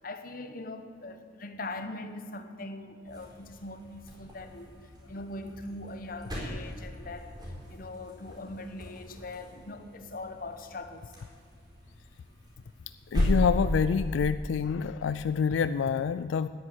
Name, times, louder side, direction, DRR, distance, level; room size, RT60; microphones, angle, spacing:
voice 1, 0.0-4.8 5.1-11.0, left 2 dB, 50° left, 1.0 m, -41 dB
sound 1, 3.0-14.2, equal, 25° right, 4.3 m, -36 dB
voice 2, 13.1-16.5, left 6 dB, 90° left, 0.3 m, -27 dB
10.5 x 9.8 x 9.7 m
head